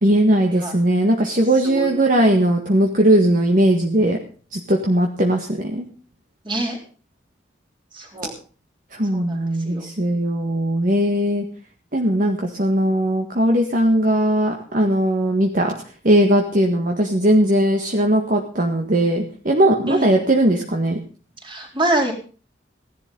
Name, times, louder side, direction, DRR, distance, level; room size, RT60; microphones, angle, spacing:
voice 1, 0.0-4.2 4.5-5.9 9.0-11.4 11.9-15.7 16.0-21.0, right 1 dB, 45° right, 2 dB, 1.7 m, -18 dB
voice 2, 6.4-6.8 7.9-8.3 9.1-9.4 9.7-9.8 19.9-20.1 21.4-22.1, right 1 dB, 25° right, 1 dB, 4.1 m, -25 dB
16.5 x 11.5 x 5.4 m, 0.39 s
head